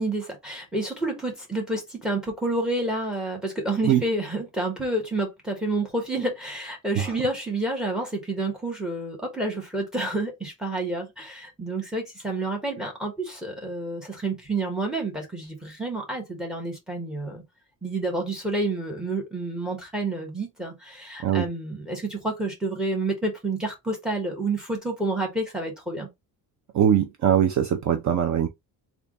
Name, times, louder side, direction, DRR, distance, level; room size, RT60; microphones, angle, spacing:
voice 1, 0.0-17.4 17.8-26.1, right 2 dB, ahead, 1.2 m, -29 dB
voice 2, 26.7-28.5, right 9 dB, 45° right, 0.5 m, -21 dB
3.4 x 2.5 x 3.6 m
cardioid pair, 170°, 39 cm